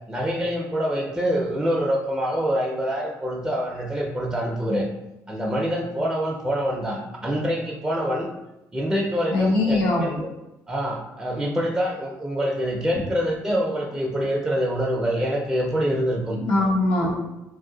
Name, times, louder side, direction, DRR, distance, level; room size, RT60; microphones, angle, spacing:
voice 1, 0.1-4.8 5.3-8.3 8.7-10.3 10.7-16.4 17.0-17.2, equal, 10° right, -2 dB, 0.5 m, -25 dB
voice 2, 9.3-10.1 16.3-17.2, left 2 dB, 85° left, -3 dB, 0.9 m, -21 dB
2.6 x 2.2 x 3.8 m, 0.93 s
cardioid pair, 90°, 7 cm